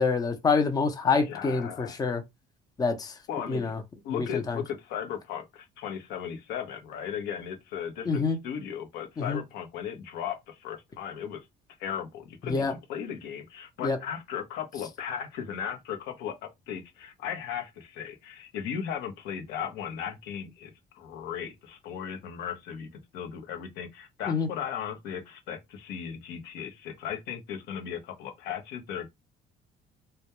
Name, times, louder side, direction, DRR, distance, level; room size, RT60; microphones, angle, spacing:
voice 1, 0.0-2.2 2.8-3.1 3.5-3.8 4.1-4.6 8.1-8.4 9.2-9.4 12.5-12.7 13.8-14.0 24.3-24.5, left 4 dB, 20° left, 0.5 m, -26 dB
voice 2, 1.2-2.0 3.3-3.7 4.0-11.4 11.8-29.1, left 8 dB, 90° left, 0.7 m, -36 dB
2.2 x 2.2 x 2.8 m
cardioid pair, 110°, 17 cm